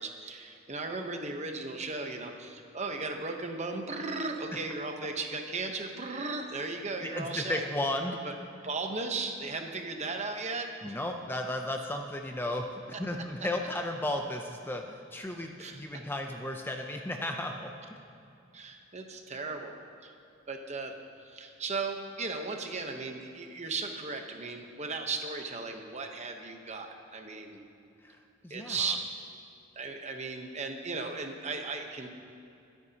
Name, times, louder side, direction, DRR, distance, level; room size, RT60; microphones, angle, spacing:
voice 1, 0.0-7.6 8.2-8.3 8.6-10.9 15.6-15.8 18.5-19.7 20.0-20.1 20.5-20.9 21.2-27.6 28.5-29.0 29.8-32.1, right 3 dB, 35° right, 4 dB, 1.0 m, -36 dB
voice 2, 7.1-8.2 10.8-17.7 28.0-29.0, left 1 dB, 10° left, 3 dB, 0.5 m, -34 dB
22.5 x 9.2 x 2.9 m, 2.7 s
head